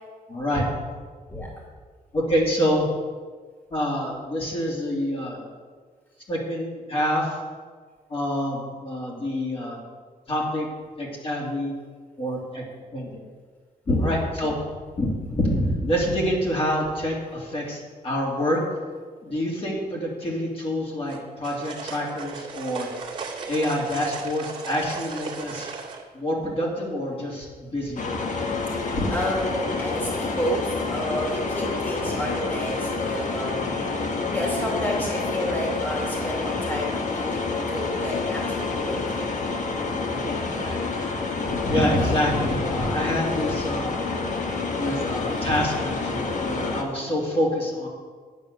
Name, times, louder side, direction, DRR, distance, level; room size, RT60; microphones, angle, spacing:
voice 1, 0.3-0.7 1.3-1.4 2.1-2.9 3.7-5.4 6.3-7.4 8.1-9.8 10.3-10.7 11.0-11.7 12.2-12.6 12.9-13.2 13.9-14.6 15.0-18.6 19.2-22.9 23.5-25.7 26.1-28.1 28.9-29.1 39.8-44.0 44.8-47.9, equal, 35° left, -3 dB, 2.8 m, -27 dB
sound 1, 21.1-26.0, right 5 dB, 35° right, 2.2 m, -36 dB
sound 2, 28.0-46.8, left 3 dB, 55° left, 1.4 m, -28 dB
voice 2, 28.7-33.8 34.3-39.4, equal, 15° left, -3 dB, 2.5 m, -30 dB
9.3 x 9.1 x 6.7 m, 1.5 s
wide cardioid pair, 130°, 16 cm